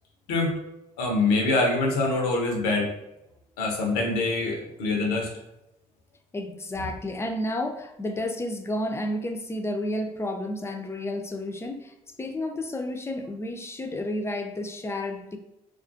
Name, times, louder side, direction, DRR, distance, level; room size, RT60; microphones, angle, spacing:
voice 1, 1.0-2.9 3.6-5.3, left 2 dB, 85° left, 1 dB, 0.6 m, -24 dB
voice 2, 6.3-15.4, left 1 dB, 15° left, 5 dB, 0.4 m, -31 dB
2.4 x 2.3 x 2.4 m, 0.89 s
hypercardioid pair, 55°, 19 cm